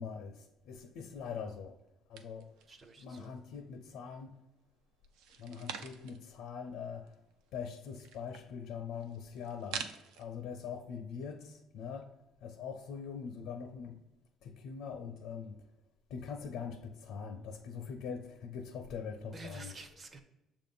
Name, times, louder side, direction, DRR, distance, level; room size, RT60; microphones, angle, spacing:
voice 1, 0.0-1.8 2.1-2.5 3.0-4.4 5.4-7.2 7.5-9.9 10.2-14.0 14.4-15.7 16.1-19.7, left 6 dB, 70° left, 0.5 m, -43 dB
sound 1, 2.2-3.5 3.8-4.5 5.0-6.3 6.7-6.8 7.0-10.2, right 7 dB, 90° right, 0.5 m, -47 dB
voice 2, 2.7-3.3 19.3-20.2, right 3 dB, 20° right, 0.5 m, -49 dB
7.1 x 2.5 x 5.3 m
cardioid pair, 180°, 0 cm